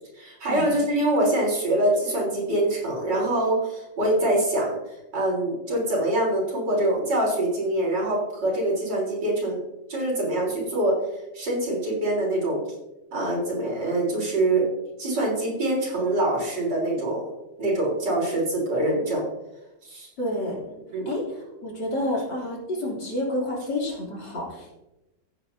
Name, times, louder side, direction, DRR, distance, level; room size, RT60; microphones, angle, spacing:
voice 1, 0.2-9.6 9.9-11.0 11.3-12.6 13.1-14.7 15.0-17.3 17.6-19.3 19.8-20.1 20.9-21.1, right 1 dB, 70° right, -4 dB, 4.4 m, -24 dB
voice 2, 20.2-20.8 21.1-24.7, left 1 dB, 65° left, -4 dB, 3.7 m, -29 dB
15.5 x 9.5 x 2.7 m, 0.95 s
omnidirectional pair, 2.0 m